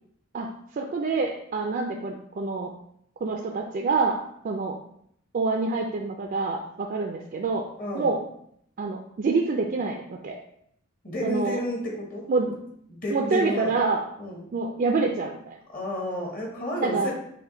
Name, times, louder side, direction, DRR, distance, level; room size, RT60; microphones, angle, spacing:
voice 1, 0.7-2.7 3.2-4.2 4.4-4.8 5.3-7.7 7.9-8.2 8.8-10.4 11.2-11.6 12.3-12.6 13.1-14.0 14.5-15.6 16.8-17.1, right 4 dB, 40° right, 1 dB, 0.3 m, -26 dB
voice 2, 7.8-8.1 11.0-12.2 12.9-13.7 14.2-14.4 15.7-17.1, left 1 dB, 40° left, -1 dB, 1.0 m, -31 dB
5.5 x 2.2 x 3.7 m, 0.70 s
head